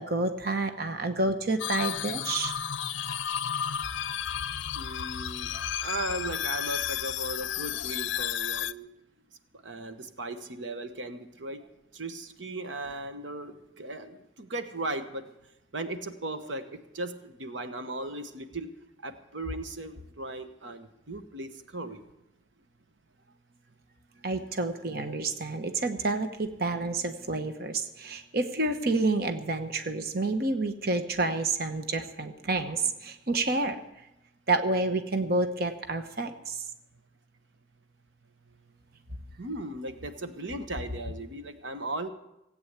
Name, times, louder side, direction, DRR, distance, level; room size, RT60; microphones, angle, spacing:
voice 1, 0.0-2.5 5.5-5.7 24.2-33.8 34.5-36.6, right 2 dB, 55° right, 7 dB, 1.0 m, -29 dB
sound 1, 1.6-8.7, left 9 dB, 75° left, 0.5 m, -32 dB
voice 2, 4.7-5.5 5.8-8.9 9.6-11.6 11.9-15.3 15.7-18.7 19.0-22.0 39.4-42.1, right 2 dB, 75° right, 8 dB, 1.1 m, -37 dB
17.0 x 8.7 x 8.1 m, 0.90 s
head